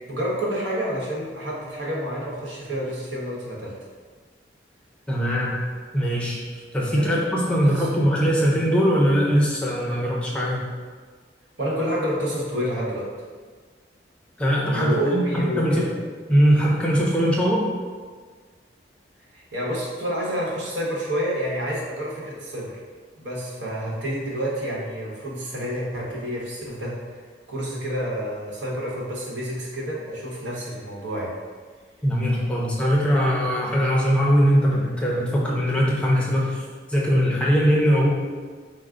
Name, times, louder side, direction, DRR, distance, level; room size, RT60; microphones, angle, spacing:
voice 1, 0.1-3.7 7.0-7.2 7.6-7.9 11.6-13.1 14.7-15.9 19.3-22.8 23.2-26.9 27.5-31.3, equal, 90° right, -4 dB, 1.0 m, -29 dB
voice 2, 5.1-5.6 5.9-10.6 14.4-15.9 16.3-17.7 32.0-36.6 36.9-38.1, equal, 5° left, -4 dB, 0.5 m, -21 dB
4.6 x 2.0 x 3.6 m, 1.6 s
head